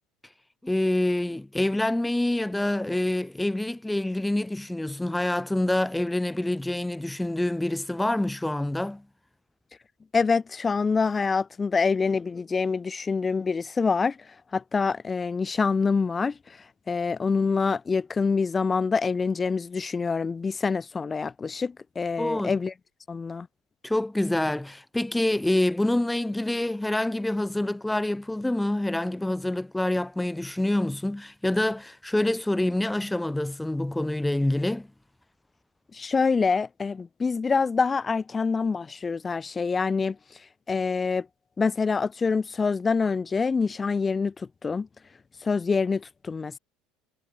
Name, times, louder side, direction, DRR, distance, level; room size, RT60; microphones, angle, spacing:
voice 1, 0.6-9.0 22.2-22.5 23.8-34.9, left 1 dB, 5° left, 3.5 m, -26 dB
voice 2, 10.1-14.2 14.5-16.6 16.9-22.7 23.1-23.5 35.9-40.2 40.7-41.3 41.6-44.9 45.4-46.6, left 5 dB, 25° left, 5.9 m, -26 dB
supercardioid pair, 95°, 0 cm